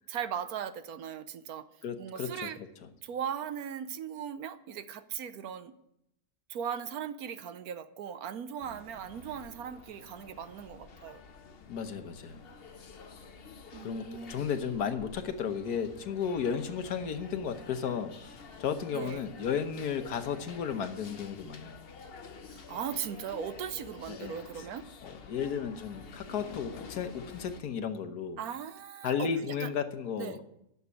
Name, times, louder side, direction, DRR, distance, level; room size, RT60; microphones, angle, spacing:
voice 1, 0.1-1.7 2.0-2.6 3.0-5.7 6.5-11.2 13.7-14.4 18.9-19.2 22.5-24.9 28.4-29.3 29.6-29.7 30.2-30.4, right 8 dB, 70° right, 12 dB, 1.2 m, -38 dB
voice 2, 1.8-2.5 11.7-12.4 13.8-21.8 24.1-24.4 25.0-28.4 29.0-30.4, left 7 dB, 75° left, 8 dB, 1.5 m, -34 dB
sound 1, 8.6-27.6, left 4 dB, 45° left, 1.0 m, -49 dB
11.0 x 7.0 x 9.5 m, 0.80 s
omnidirectional pair, 1.7 m